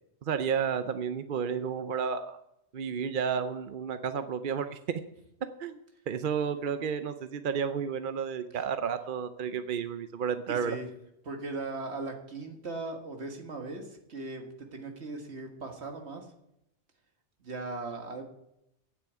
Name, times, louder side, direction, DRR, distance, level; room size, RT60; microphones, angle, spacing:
voice 1, 0.2-2.4 2.7-5.0 5.6-5.8 6.1-10.8, right 7 dB, 55° right, 10 dB, 0.7 m, -31 dB
voice 2, 10.5-10.9 11.2-16.3 17.4-18.2, right 3 dB, 70° right, 4 dB, 1.9 m, -38 dB
9.3 x 8.3 x 8.1 m, 0.83 s
omnidirectional pair, 1.2 m